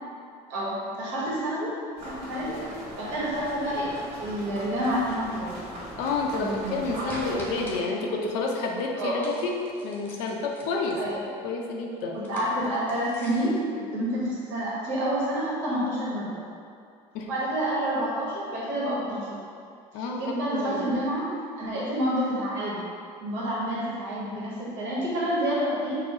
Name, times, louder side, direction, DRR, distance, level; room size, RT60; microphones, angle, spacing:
voice 1, 0.5-1.7 2.0-2.6 3.0-3.9 4.2-5.6 6.4-7.4 9.0-9.2 11.0-11.3 12.1-16.4 17.3-19.4 19.9-21.3 21.6-22.8 23.2-26.0, equal, 75° right, -7 dB, 1.1 m, -29 dB
sound 1, 2.0-7.8, right 1 dB, 50° right, 1.3 m, -40 dB
voice 2, 6.0-9.5 9.8-11.0 11.2-12.2 17.1-17.3 19.9-20.9, left 3 dB, 85° left, 0 dB, 0.6 m, -29 dB
sound 2, 7.1-7.8 9.2-11.1 12.1-13.6, equal, 15° left, 0.8 m, -44 dB
4.8 x 2.0 x 4.7 m, 2.4 s
cardioid pair, 140°, 14 cm